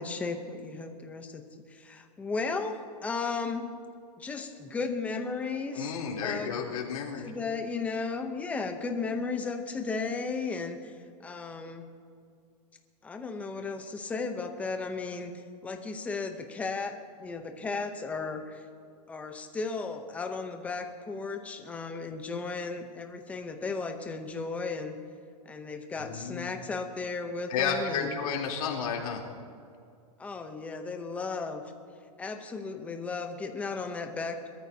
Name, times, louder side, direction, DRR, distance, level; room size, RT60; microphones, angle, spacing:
voice 1, 0.0-1.4 1.7-3.7 4.2-5.9 6.2-6.5 7.2-11.0 11.2-11.9 13.0-18.7 19.1-25.0 25.4-28.2 30.2-31.6 32.2-34.5, left 4 dB, 5° left, 5 dB, 0.7 m, -35 dB
voice 2, 5.7-7.3 26.0-26.5 27.5-29.2, left 6 dB, 60° left, -2 dB, 3.3 m, -32 dB
24.0 x 13.5 x 2.8 m, 2.3 s
supercardioid pair, 170°, 21 cm